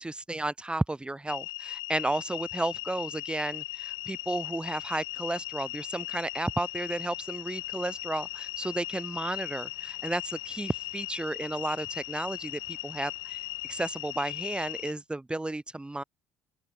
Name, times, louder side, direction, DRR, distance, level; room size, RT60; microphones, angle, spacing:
voice 1, 0.0-16.0, right 2 dB, 15° right, 3.3 m, -33 dB
sound 1, 1.3-14.9, left 22 dB, 75° left, 4.1 m, -38 dB
open air
hypercardioid pair, 60°, 8 cm